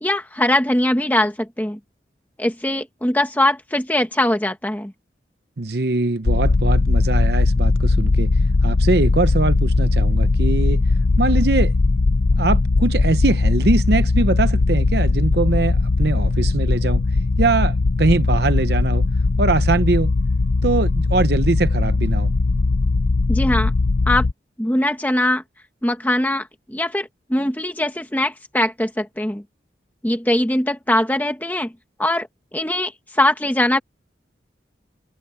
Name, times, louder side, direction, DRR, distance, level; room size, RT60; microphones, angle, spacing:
voice 1, 0.0-1.8 2.4-4.9 23.3-23.7 24.1-24.3 24.6-25.4 25.8-29.4 30.0-31.7 32.0-32.3 32.5-33.8, left 1 dB, 10° left, 1.2 m, -21 dB
voice 2, 5.6-8.3 8.6-10.8 11.2-11.7 12.4-17.0 17.4-19.1 19.4-20.1 20.6-22.3, right 3 dB, 60° right, 0.8 m, -22 dB
sound 1, 6.2-24.3, left 3 dB, 75° left, 0.6 m, -19 dB
head